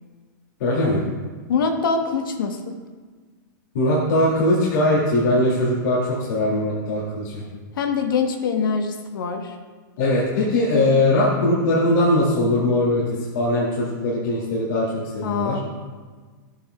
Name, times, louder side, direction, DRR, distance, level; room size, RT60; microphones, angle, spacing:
voice 1, 0.6-1.0 3.7-7.4 10.0-13.0 13.3-14.9 15.1-15.6, left 1 dB, 65° left, -7 dB, 2.3 m, -20 dB
voice 2, 1.5-2.8 7.7-9.6 15.2-15.6, left 5 dB, 85° left, 5 dB, 1.0 m, -24 dB
13.0 x 8.7 x 2.3 m, 1.4 s
hypercardioid pair, 145°, 11 cm